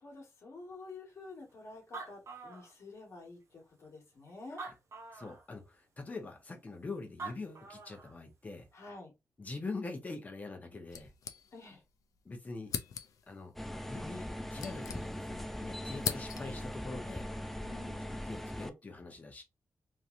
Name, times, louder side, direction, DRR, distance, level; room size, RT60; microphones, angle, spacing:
voice 1, 0.0-4.6 8.7-9.1 11.5-11.8 17.6-18.2, left 3 dB, 55° left, 1.4 m, -49 dB
Animal, 1.5-1.6 1.8-3.2 3.8-3.9 4.5-5.5 6.9-7.0 7.2-8.1, right 4 dB, 55° right, 0.9 m, -45 dB
voice 2, 5.1-8.6 9.4-11.1 12.2-12.7 13.3-13.5 13.8-17.3 18.0-19.4, left 3 dB, 25° left, 0.8 m, -44 dB
sound 1, 10.9-11.9 12.2-12.3 12.7-13.4 14.2-15.5 15.7-16.7, left 7 dB, 75° left, 0.4 m, -40 dB
sound 2, 13.6-18.7, equal, 5° left, 0.3 m, -40 dB
3.1 x 2.7 x 2.5 m
wide cardioid pair, 150°, 6 cm